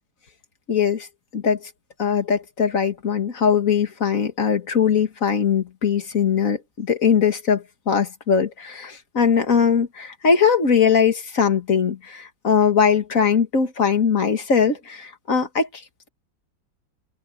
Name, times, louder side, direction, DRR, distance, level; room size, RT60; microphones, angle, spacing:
voice 1, 0.7-1.1 1.3-1.7 2.0-15.8, left 6 dB, 45° left, 2.1 m, -20 dB
omnidirectional pair, 2.1 m